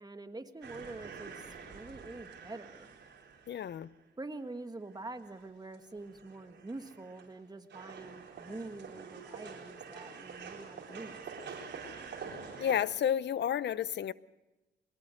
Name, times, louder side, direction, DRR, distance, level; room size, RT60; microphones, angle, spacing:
voice 1, 0.0-2.9 4.2-11.6, right 2 dB, 20° right, 1.6 m, -45 dB
sound 1, 0.6-4.0 4.5-4.6 4.9-7.4 7.7-12.8, right 5 dB, 80° right, 4.2 m, -47 dB
voice 2, 3.5-3.9 12.6-14.1, left 9 dB, 75° left, 0.7 m, -31 dB
23.0 x 19.0 x 6.5 m
cardioid pair, 75°, 18 cm